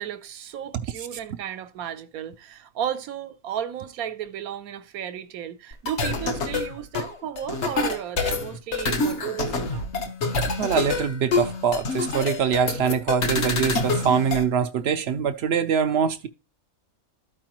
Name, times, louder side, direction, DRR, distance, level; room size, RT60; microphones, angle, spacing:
voice 1, 0.0-9.9, right 10 dB, 85° right, 1.2 m, -34 dB
sound 1, 5.7-14.4, left 3 dB, 55° left, 1.2 m, -27 dB
voice 2, 10.6-16.3, right 7 dB, 65° right, 0.6 m, -23 dB
13.0 x 4.8 x 2.9 m
omnidirectional pair, 1.5 m